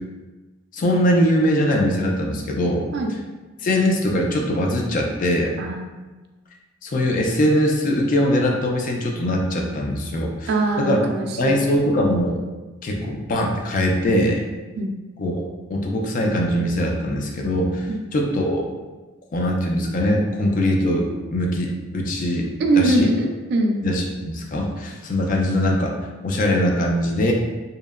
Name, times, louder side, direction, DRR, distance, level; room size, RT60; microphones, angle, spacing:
voice 1, 0.7-2.9 3.6-5.5 6.8-10.5 10.8-11.0 11.4-12.4 12.8-14.4 15.2-18.6 19.3-22.5 22.8-23.1 23.8-25.9 26.2-27.3, left 1 dB, 45° left, 0 dB, 0.3 m, -21 dB
voice 2, 5.6-5.9 10.5-11.6 14.8-14.9 17.9-18.0 22.6-23.8, right 2 dB, 55° right, 3 dB, 0.3 m, -22 dB
2.8 x 2.0 x 2.3 m, 1.2 s
head